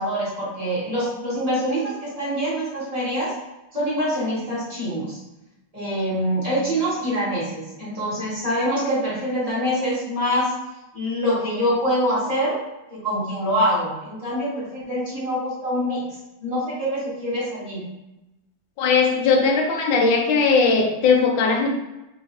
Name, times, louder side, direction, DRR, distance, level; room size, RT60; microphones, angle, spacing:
voice 1, 0.0-3.3 3.7-5.2 5.7-10.5 10.9-12.6 12.9-16.0 16.4-17.8, equal, 20° right, -10 dB, 1.4 m, -25 dB
voice 2, 18.8-21.7, left 4 dB, 75° left, 2 dB, 1.4 m, -19 dB
3.8 x 3.0 x 2.5 m, 0.97 s
omnidirectional pair, 2.2 m